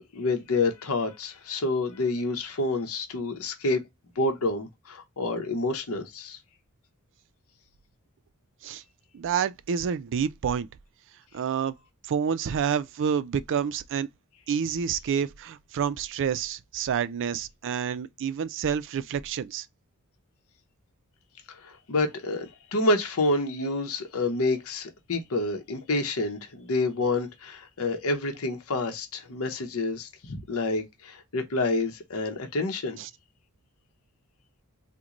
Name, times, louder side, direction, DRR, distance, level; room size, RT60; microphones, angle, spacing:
voice 1, 0.1-3.8 4.2-6.4 21.5-33.0, left 2 dB, 70° left, 0.8 m, -28 dB
voice 2, 9.1-10.7 11.3-11.7 12.1-14.1 14.5-19.7 33.0-33.1, right 7 dB, 60° right, 0.4 m, -28 dB
3.8 x 2.2 x 2.8 m
head